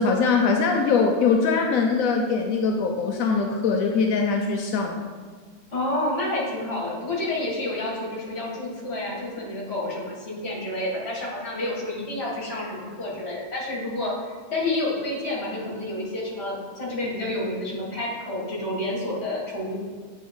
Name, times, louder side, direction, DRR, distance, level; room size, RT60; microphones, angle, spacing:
voice 1, 0.0-5.0, left 4 dB, 90° left, 2 dB, 1.0 m, -22 dB
voice 2, 5.7-19.8, left 1 dB, 50° left, -4 dB, 1.8 m, -29 dB
8.5 x 3.5 x 3.6 m, 1.5 s
omnidirectional pair, 1.4 m